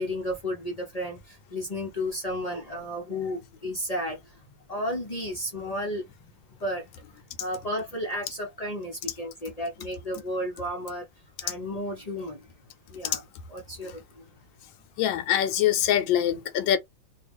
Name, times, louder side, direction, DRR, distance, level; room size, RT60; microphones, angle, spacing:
voice 1, 0.0-6.9 7.1-11.1 11.4-12.5 12.9-14.4, left 1 dB, 45° left, 0.4 m, -33 dB
voice 2, 15.0-16.8, left 10 dB, 85° left, 1.3 m, -23 dB
3.1 x 2.4 x 3.4 m
omnidirectional pair, 2.0 m